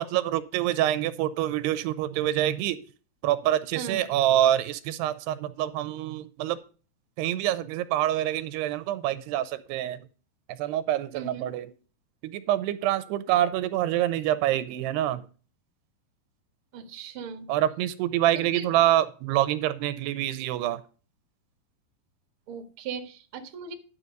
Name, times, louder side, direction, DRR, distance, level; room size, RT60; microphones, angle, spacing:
voice 1, 0.0-2.8 3.2-6.6 7.2-10.0 10.6-11.7 12.2-15.3 17.5-20.8, right 13 dB, 85° right, 14 dB, 2.7 m, -26 dB
voice 2, 11.1-11.5 16.7-17.5 18.5-18.7 22.5-23.7, right 7 dB, 55° right, 5 dB, 1.5 m, -38 dB
11.0 x 7.2 x 3.9 m, 0.37 s
omnidirectional pair, 4.8 m